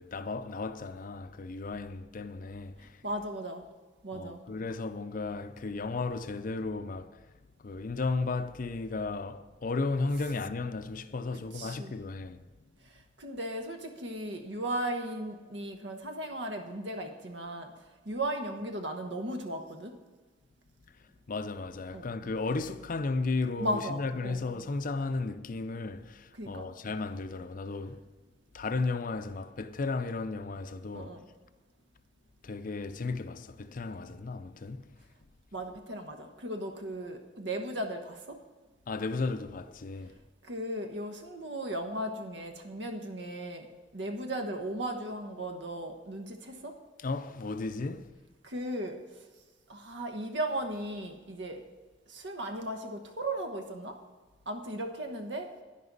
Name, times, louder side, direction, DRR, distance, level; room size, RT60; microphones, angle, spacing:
voice 1, 0.0-3.0 4.1-7.3 7.6-12.5 21.3-28.0 28.5-31.2 32.4-34.9 38.9-40.1 47.0-48.1, left 3 dB, 50° left, 0.5 m, -34 dB
voice 2, 3.0-3.6 4.0-4.4 11.5-11.9 13.2-17.7 18.0-19.9 21.9-22.1 23.6-24.4 26.4-26.7 30.9-31.2 35.5-38.4 40.4-43.7 43.9-46.7 48.4-49.0 49.7-51.6 52.1-54.0 54.5-55.5, right 1 dB, 70° right, 1.3 m, -36 dB
11.0 x 10.0 x 4.0 m
head